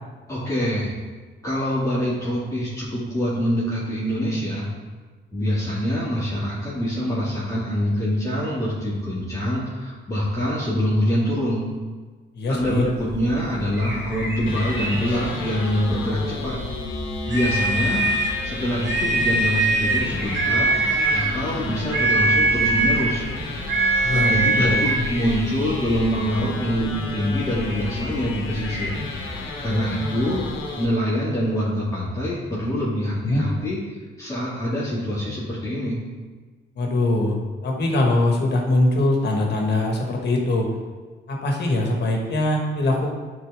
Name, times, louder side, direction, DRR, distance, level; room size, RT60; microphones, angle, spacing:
voice 1, 0.3-0.9 1.4-4.7 5.3-11.6 12.5-16.6 17.3-18.1 18.4-23.3 24.1-29.0 29.6-30.4 30.8-33.8 34.2-36.0, equal, 15° left, -11 dB, 2.3 m, -25 dB
voice 2, 12.3-12.8 24.0-24.8 33.2-33.4 36.7-40.7 41.3-43.1, left 2 dB, 60° left, 1 dB, 1.6 m, -22 dB
sound 1, 12.6-28.9, equal, 10° right, 1.9 m, -36 dB
sound 2, 14.5-30.9, left 3 dB, 85° left, 1.1 m, -32 dB
sound 3, 17.3-18.4 18.8-20.1 20.3-21.3 21.9-23.1 23.7-25.0, right 2 dB, 65° right, 2.1 m, -21 dB
9.6 x 4.3 x 3.6 m, 1.4 s
cardioid pair, 90°, 20 cm